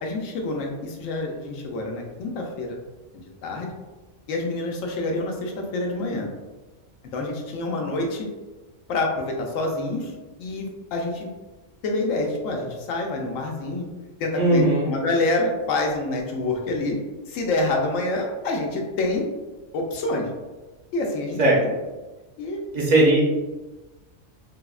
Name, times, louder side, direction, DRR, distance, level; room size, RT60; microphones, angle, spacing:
voice 1, 0.0-2.8 3.4-3.7 4.3-6.3 7.1-8.3 8.9-10.1 10.4-11.3 11.8-13.9 14.2-17.0 17.3-19.3 19.7-20.3 20.9-21.7 22.4-22.6, left 2 dB, 80° left, 1 dB, 1.0 m, -27 dB
voice 2, 14.3-14.9 21.4-21.6 22.7-23.2, right 2 dB, 45° right, -4 dB, 0.6 m, -18 dB
3.4 x 2.0 x 2.3 m, 1.2 s
omnidirectional pair, 1.3 m